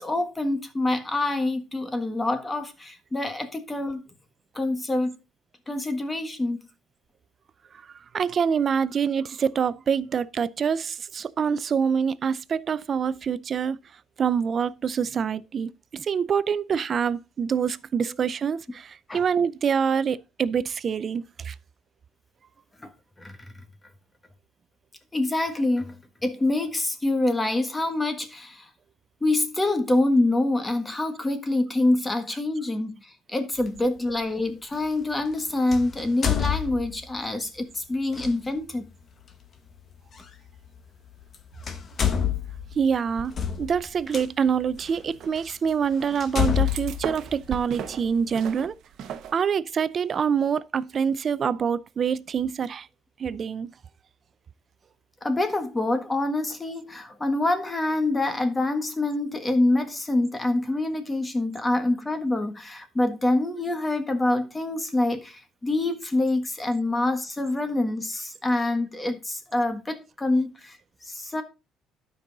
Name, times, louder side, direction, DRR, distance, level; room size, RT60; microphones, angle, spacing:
voice 1, 0.0-4.0 4.5-5.2 5.7-6.6 19.1-19.2 22.8-22.9 23.2-23.5 25.1-25.9 26.2-28.7 29.2-38.9 55.2-70.8 71.0-71.4, left 2 dB, 15° left, 1.5 m, -26 dB
voice 2, 8.1-13.8 14.2-21.5 42.8-43.3 43.6-48.8 49.3-52.9 53.2-53.7, right 7 dB, 35° right, 0.5 m, -26 dB
sound 1, 33.6-33.8 35.7-37.2 38.1-38.3 40.2-40.3 41.2-41.4 41.6-44.2 44.9-45.0 45.5-45.6 46.2-48.0, left 9 dB, 35° left, 1.2 m, -27 dB
sound 2, 43.2-43.9 44.2-49.3, right 8 dB, 60° right, 0.9 m, -38 dB
12.0 x 5.4 x 4.0 m
cardioid pair, 135°, 0 cm